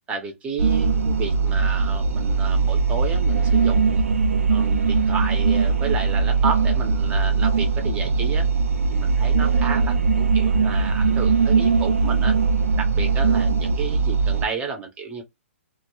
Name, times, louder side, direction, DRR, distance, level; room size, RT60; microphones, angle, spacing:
voice 1, 0.1-4.0 4.5-8.5 8.9-12.4 12.8-15.2, right 4 dB, 15° right, 0.6 m, -32 dB
sound 1, 0.6-14.5, right 5 dB, 90° right, 0.4 m, -20 dB
2.2 x 2.0 x 2.9 m
hypercardioid pair, 140°, 7 cm